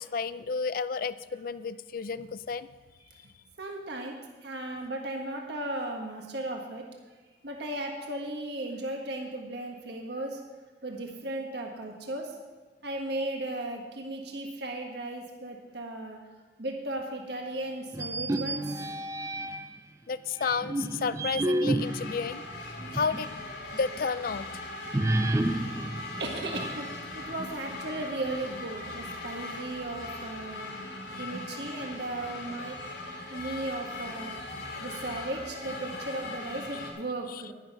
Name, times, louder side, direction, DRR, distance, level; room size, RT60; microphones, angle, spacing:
voice 1, 0.0-2.7 20.1-22.4 22.9-23.4 23.8-24.5 31.2-31.3 34.8-35.5 37.3-37.5, left 5 dB, 50° left, 15 dB, 0.4 m, -32 dB
voice 2, 3.6-6.9 7.4-10.4 10.8-12.3 12.8-16.2 16.6-18.8 25.4-25.8 26.2-32.8 33.3-34.4 34.8-37.5, right 2 dB, 65° right, 1 dB, 1.6 m, -36 dB
sound 1, 17.9-19.8 20.4-23.4 23.7-23.8 24.9-27.0, right 1 dB, 15° right, 0.5 m, -30 dB
sound 2, 21.8-36.9, left 2 dB, 85° left, 2.9 m, -40 dB
11.0 x 10.5 x 5.6 m, 1.3 s
head